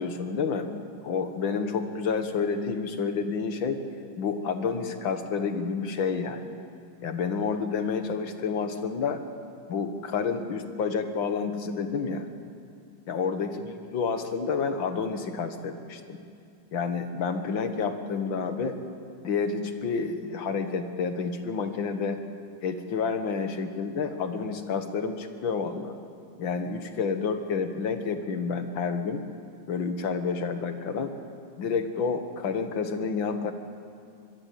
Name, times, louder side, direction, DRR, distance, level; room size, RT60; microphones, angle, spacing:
voice 1, 0.0-3.8 4.2-6.6 7.0-9.2 9.7-12.3 13.1-16.2 16.7-18.8 19.2-22.2 22.6-26.0 26.4-29.2 29.7-31.1 31.6-33.5, left 5 dB, 80° left, 7 dB, 2.2 m, -29 dB
24.0 x 21.5 x 7.7 m, 2.4 s
omnidirectional pair, 2.1 m